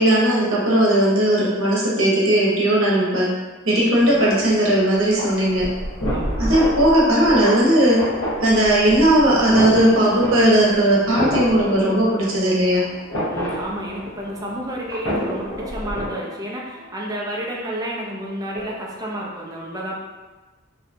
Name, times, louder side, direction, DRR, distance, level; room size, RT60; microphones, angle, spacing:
voice 1, 0.0-3.3 3.6-5.7 6.4-8.1 8.4-12.8, right 1 dB, 70° right, -5 dB, 0.8 m, -17 dB
sound 1, 4.0-16.1, equal, 70° left, 0.8 m, -29 dB
voice 2, 6.1-6.6 13.3-19.9, right 1 dB, 20° right, -3 dB, 0.4 m, -31 dB
sound 2, 11.1-14.2 14.5-14.6 15.1-18.0 18.4-19.0, left 1 dB, 40° left, 0.5 m, -35 dB
2.7 x 2.2 x 2.5 m, 1.2 s
head